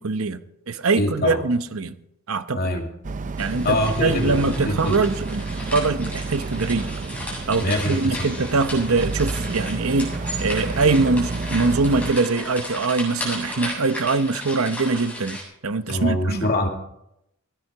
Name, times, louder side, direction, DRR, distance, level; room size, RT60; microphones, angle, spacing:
voice 1, 0.0-2.0 2.3-2.7 3.4-6.9 7.5-10.1 10.4-15.4 15.6-16.5, right 3 dB, 75° right, 0.9 m, -23 dB
voice 2, 1.0-1.4 2.5-2.9 3.6-5.0 7.6-8.3 15.9-16.7, left 1 dB, 50° left, 2.4 m, -24 dB
Boat Water vehicle, 3.0-12.1, right 3 dB, 35° right, 0.5 m, -30 dB
sound 1, 3.4-15.4, equal, 5° left, 7.9 m, -35 dB
16.0 x 12.5 x 4.9 m
head